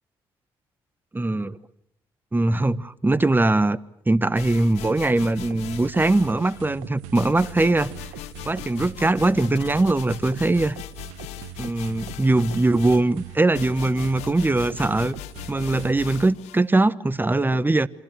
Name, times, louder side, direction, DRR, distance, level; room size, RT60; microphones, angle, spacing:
voice 1, 1.1-1.6 2.3-3.8 4.1-7.9 8.4-10.8 11.6-15.1 15.5-17.9, right 2 dB, 20° right, 1.3 m, -21 dB
sound 1, 4.4-6.7 7.1-16.6, left 14 dB, 80° left, 1.1 m, -39 dB
sound 2, 5.4-15.9, right 12 dB, 85° right, 1.3 m, -41 dB
28.5 x 25.5 x 6.4 m
hypercardioid pair, 50°, 11 cm